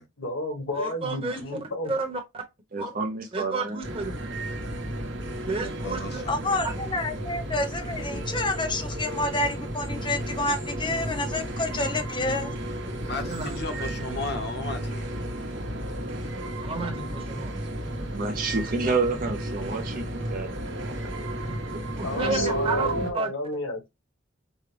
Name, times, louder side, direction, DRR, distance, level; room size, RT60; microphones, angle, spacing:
voice 1, 0.2-1.9 22.0-23.8, left 2 dB, 75° left, 1.6 m, -31 dB
voice 2, 0.7-2.4 2.8-2.9 3.3-4.1 5.4-6.2 13.3-13.8 14.3-14.4 16.6-17.6 22.0-23.3, right 3 dB, 30° right, 1.1 m, -32 dB
voice 3, 2.7-3.8 5.6-6.1 18.1-21.1, right 3 dB, 45° right, 0.6 m, -30 dB
sound 1, 3.8-23.1, right 1 dB, 60° right, 1.2 m, -33 dB
voice 4, 5.7-6.6 13.1-15.1, left 3 dB, 50° left, 0.9 m, -35 dB
voice 5, 6.3-12.5, left 2 dB, 25° left, 0.7 m, -29 dB
5.4 x 2.3 x 3.3 m
head